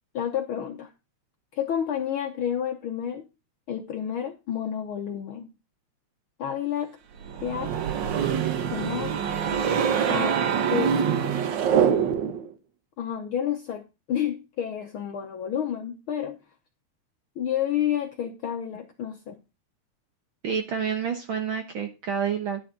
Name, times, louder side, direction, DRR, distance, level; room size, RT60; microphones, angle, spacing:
voice 1, 0.1-0.9 1.5-3.2 3.7-5.5 6.4-7.0 7.4-7.7 8.7-9.2 10.1-10.4 10.7-11.4 13.0-16.4 17.4-19.4, left 9 dB, 70° left, 5 dB, 1.3 m, -30 dB
sound 1, 7.2-12.5, right 8 dB, 80° right, 1.0 m, -24 dB
voice 2, 20.4-22.6, right 7 dB, 60° right, 6 dB, 1.4 m, -28 dB
11.0 x 9.1 x 3.8 m, 0.28 s
omnidirectional pair, 3.3 m